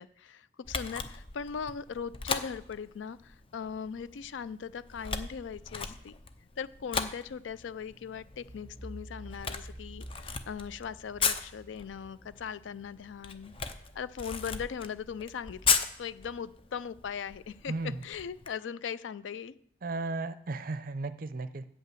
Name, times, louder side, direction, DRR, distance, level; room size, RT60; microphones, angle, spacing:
voice 1, 0.0-6.1 6.6-13.5 14.0-19.5, left 7 dB, 85° left, 17 dB, 0.4 m, -39 dB
Camera, 0.6-18.5, left 5 dB, 30° left, 0.5 m, -37 dB
sound 1, 8.4-13.3, right 1 dB, 15° right, 0.9 m, -49 dB
voice 2, 17.7-18.0 19.8-21.7, right 3 dB, 50° right, 13 dB, 0.5 m, -35 dB
8.3 x 5.6 x 7.6 m, 0.67 s
head